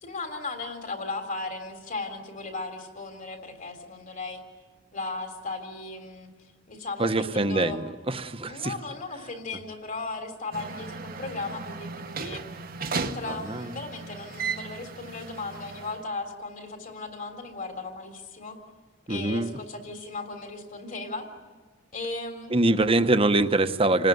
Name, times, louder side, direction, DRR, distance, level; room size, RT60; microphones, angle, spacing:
voice 1, 0.0-4.4 4.9-6.3 6.7-7.8 8.5-12.4 12.9-18.6 19.1-21.3 21.9-22.5, left 3 dB, 45° left, 7 dB, 3.6 m, -36 dB
voice 2, 7.0-8.7 13.3-13.7 19.1-19.5 22.5-24.1, right 2 dB, 30° right, 10 dB, 1.2 m, -24 dB
sound 1, 10.5-16.0, right 4 dB, 50° right, 1.3 m, -36 dB
28.0 x 19.5 x 9.5 m, 1.4 s
head